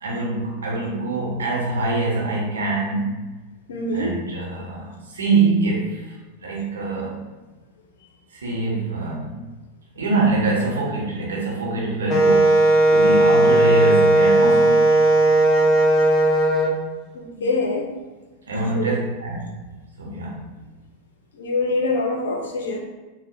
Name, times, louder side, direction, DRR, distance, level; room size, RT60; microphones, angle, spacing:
voice 1, 0.0-3.2 3.9-6.1 6.4-7.2 8.3-9.4 9.9-15.0 17.3-17.4 18.5-19.5 20.0-20.5, right 3 dB, 70° right, -3 dB, 0.9 m, -24 dB
voice 2, 3.7-4.1 17.1-17.9 18.7-18.9 21.4-22.8, left 2 dB, 60° left, 2 dB, 0.6 m, -24 dB
Wind instrument woodwind instrument, 12.1-16.7, right 2 dB, 20° left, 0.5 m, -16 dB
4.3 x 2.1 x 2.6 m, 1.2 s
figure-of-eight pair, 90°, 0 cm